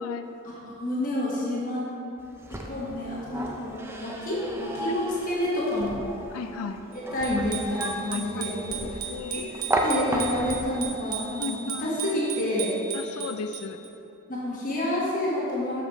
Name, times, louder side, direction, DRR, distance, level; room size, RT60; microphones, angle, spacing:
voice 1, 0.4-1.9 2.7-6.0 6.9-12.7 14.3-15.8, left 1 dB, 40° left, -6 dB, 1.2 m, -29 dB
sound 1, 2.2-10.7, right 1 dB, 10° right, 0.4 m, -34 dB
Thump thud, 5.8-6.2 7.2-7.6 8.7-9.1 10.4-10.8, equal, 10° left, 1.1 m, -40 dB
voice 2, 6.3-6.8 8.1-8.5 8.8-9.5 11.4-12.1 12.9-13.8, left 5 dB, 75° left, 8 dB, 0.3 m, -35 dB
Bicycle bell, 7.2-13.9, right 7 dB, 85° right, 1.0 m, -36 dB
7.0 x 5.0 x 4.0 m, 2.8 s
head